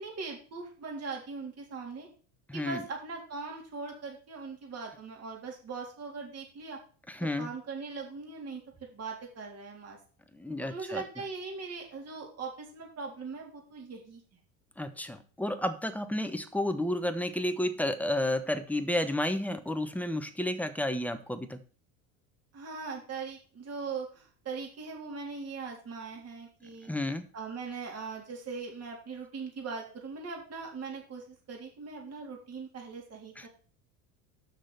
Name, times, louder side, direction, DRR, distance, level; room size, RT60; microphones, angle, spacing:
voice 1, 0.0-2.1 2.5-6.8 7.4-8.6 8.9-10.0 10.6-14.2 22.5-26.9 27.3-33.5, right 4 dB, 35° right, 0 dB, 3.6 m, -40 dB
voice 2, 2.5-2.8 7.1-7.5 10.3-11.0 14.8-21.6 26.9-27.2 33.4-33.5, left 1 dB, 5° left, 8 dB, 1.0 m, -31 dB
6.4 x 6.4 x 6.7 m, 0.40 s
supercardioid pair, 100°, 43 cm